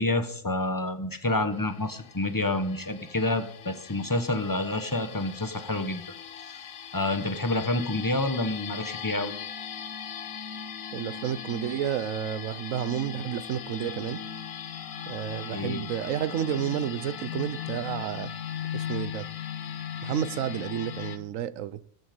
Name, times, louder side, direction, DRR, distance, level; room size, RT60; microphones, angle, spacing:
voice 1, 0.0-6.0 6.9-9.3 15.5-15.9, left 2 dB, 15° left, 1.0 m, -28 dB
sound 1, 1.5-21.2, left 8 dB, 80° left, 1.4 m, -39 dB
voice 2, 10.9-14.2 15.1-18.3 18.7-19.3 20.0-21.8, right 10 dB, 80° right, 1.0 m, -31 dB
14.0 x 8.0 x 5.2 m
omnidirectional pair, 1.4 m